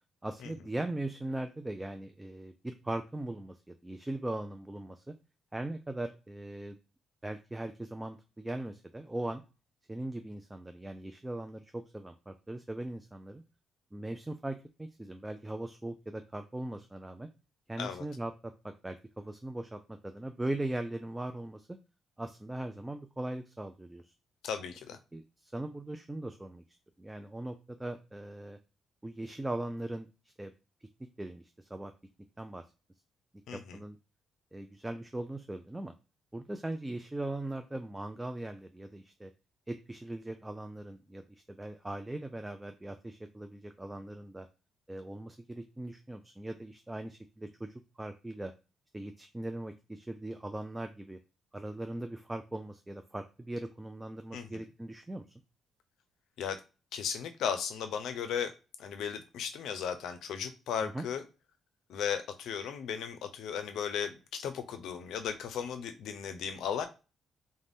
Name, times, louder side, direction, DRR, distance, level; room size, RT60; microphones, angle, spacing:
voice 1, 0.2-5.1 5.5-6.8 7.2-9.4 9.9-13.4 13.9-17.3 17.7-21.8 22.2-24.1 25.1-26.6 27.0-28.6 29.0-30.1 30.4-30.5 31.2-31.9 32.4-32.6 33.5-34.0 34.5-35.9 36.3-39.3 39.7-41.2 41.5-44.5 44.9-48.5 48.9-51.2 51.5-55.2 60.8-61.1, right 1 dB, 10° right, 7 dB, 0.3 m, -39 dB
voice 2, 24.4-25.0 33.5-33.8 54.3-54.6 56.4-56.6 56.9-58.5 58.8-61.2 61.9-66.9, left 7 dB, 80° left, 10 dB, 0.5 m, -36 dB
2.5 x 2.1 x 3.4 m, 0.31 s
cardioid pair, 90°, 0 cm